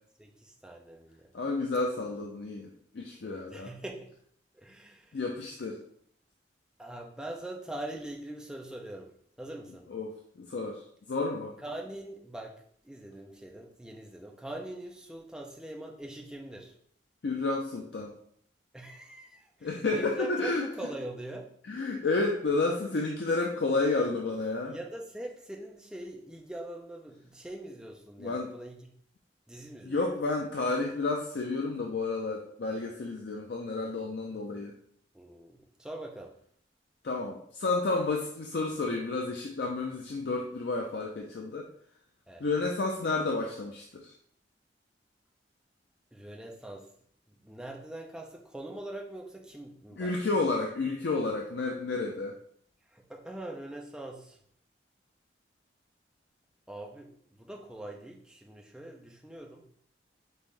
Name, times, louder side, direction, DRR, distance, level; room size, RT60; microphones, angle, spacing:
voice 1, 0.2-1.3 3.2-4.1 4.5-5.2 6.8-9.1 9.4-9.9 11.6-16.7 18.7-21.5 24.7-28.9 29.5-30.0 35.1-36.3 42.3-42.4 46.1-46.9 47.3-50.2 52.9-54.4 56.7-59.7, right 1 dB, 5° right, 0 dB, 0.5 m, -43 dB
voice 2, 1.3-2.7 2.9-3.7 5.1-5.8 9.9-11.6 17.2-18.2 19.6-20.7 21.7-24.7 28.2-28.5 29.8-34.7 37.0-41.7 42.4-44.1 50.0-52.3, left 3 dB, 60° left, 1 dB, 0.5 m, -31 dB
5.4 x 2.6 x 3.3 m, 0.63 s
head